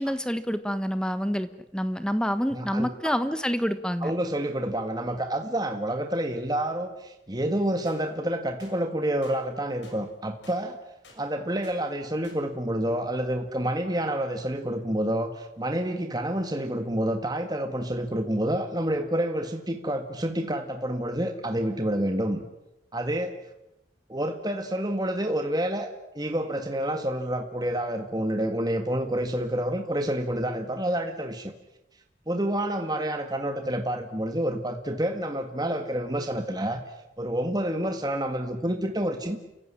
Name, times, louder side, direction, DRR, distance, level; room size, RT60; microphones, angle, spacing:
voice 1, 0.0-4.1, equal, 5° left, 12 dB, 1.2 m, -27 dB
voice 2, 2.5-3.1 4.0-10.8 11.2-22.4 22.9-23.3 24.1-25.9 26.2-31.5 32.3-36.8 37.2-39.4, right 1 dB, 20° right, 6 dB, 1.7 m, -28 dB
sound 1, 7.9-8.0 8.6-8.8 9.2-9.4 9.8-10.0 10.4-10.6 11.0-11.2 11.6-11.8 12.2-12.4, left 3 dB, 70° left, 6.7 m, -51 dB
29.5 x 16.0 x 9.8 m, 0.94 s
head